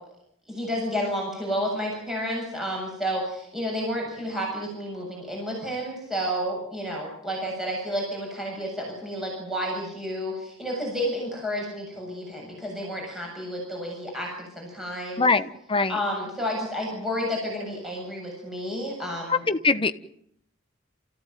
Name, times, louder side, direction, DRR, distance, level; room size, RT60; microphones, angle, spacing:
voice 1, 0.5-15.3 15.9-19.4, equal, ahead, -2 dB, 7.6 m, -31 dB
voice 2, 15.2-16.0 19.3-19.9, left 4 dB, 25° left, 10 dB, 1.2 m, -22 dB
29.0 x 16.0 x 9.3 m, 0.73 s
head